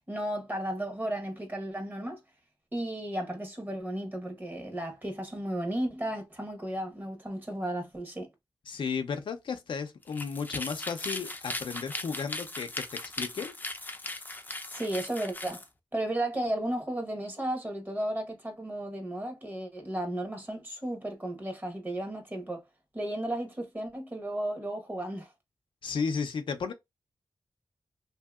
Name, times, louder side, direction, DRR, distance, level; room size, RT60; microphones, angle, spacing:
voice 1, 0.1-2.2 2.7-8.3 14.7-15.6 15.9-22.6 22.9-25.3, right 1 dB, 20° right, 1.0 m, -34 dB
voice 2, 8.7-13.5 25.8-26.7, left 5 dB, 85° left, 0.5 m, -34 dB
sound 1, 10.0-15.7, left 2 dB, 20° left, 0.5 m, -38 dB
2.7 x 2.7 x 2.3 m
wide cardioid pair, 75°, 8 cm